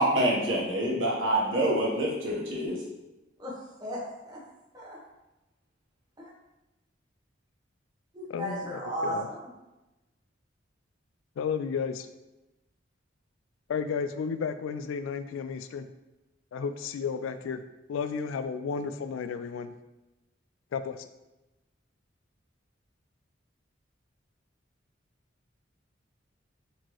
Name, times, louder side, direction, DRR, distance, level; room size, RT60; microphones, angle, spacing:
voice 1, 0.0-2.8, right 1 dB, 80° right, -3 dB, 1.1 m, -26 dB
voice 2, 3.4-4.4 4.7-5.0 6.2-6.3 8.1-9.5, equal, 20° right, -5 dB, 1.0 m, -36 dB
voice 3, 8.3-8.7 9.0-9.3 11.4-12.1 13.7-15.9 16.5-17.6 17.9-19.7 20.7-21.0, left 6 dB, 90° left, 10 dB, 0.3 m, -32 dB
4.3 x 3.0 x 3.0 m, 1.0 s
head